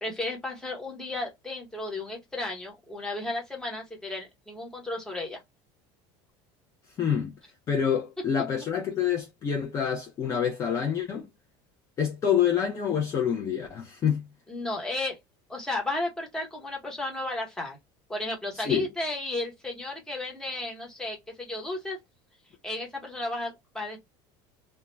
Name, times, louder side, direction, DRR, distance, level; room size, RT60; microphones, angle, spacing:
voice 1, 0.0-5.4 14.5-15.2 15.5-17.8 18.1-22.0 22.6-24.0, left 2 dB, 5° left, 0.9 m, -33 dB
voice 2, 7.0-7.3 7.7-11.3 12.0-14.2 18.5-18.9, left 8 dB, 30° left, 0.5 m, -27 dB
2.3 x 2.1 x 3.1 m
cardioid pair, 155°, 11 cm